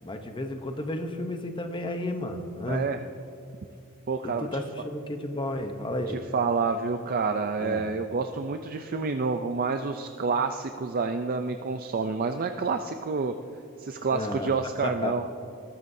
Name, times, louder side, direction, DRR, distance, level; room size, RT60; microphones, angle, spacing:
voice 1, 0.0-2.9 4.2-6.2 7.6-7.9 14.1-15.1, left 1 dB, 20° left, 6 dB, 0.8 m, -32 dB
voice 2, 2.7-3.0 4.1-4.5 6.3-13.4 13.8-15.2, right 4 dB, 40° right, 7 dB, 0.4 m, -28 dB
20.5 x 13.5 x 2.7 m, 2.7 s
head